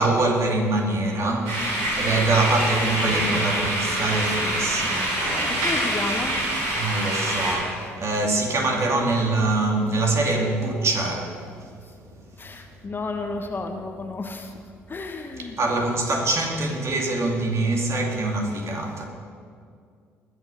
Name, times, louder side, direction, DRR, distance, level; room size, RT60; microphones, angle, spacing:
voice 1, 0.0-5.2 6.7-11.4 15.4-19.1, right 2 dB, 45° right, 2.4 m, -24 dB
sound 1, 1.5-7.5, right 1 dB, 70° right, 3.5 m, -25 dB
voice 2, 5.6-6.3 12.4-14.5 14.9-15.5, left 3 dB, 30° left, 1.3 m, -32 dB
20.0 x 7.2 x 5.6 m
figure-of-eight pair, 50°, 7 cm